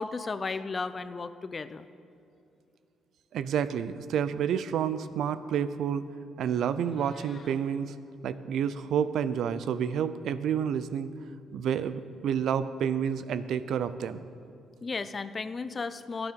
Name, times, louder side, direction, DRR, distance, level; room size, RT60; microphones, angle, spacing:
voice 1, 0.0-1.9 14.8-16.3, left 4 dB, 35° left, 13 dB, 0.5 m, -34 dB
voice 2, 3.3-6.0 6.4-7.9 8.2-11.1 11.5-14.3, right 8 dB, 75° right, 13 dB, 0.5 m, -29 dB
Meow, 6.7-7.6, left 4 dB, 55° left, 1.7 m, -54 dB
12.0 x 9.1 x 6.9 m, 2.5 s
cardioid pair, 90°, 0 cm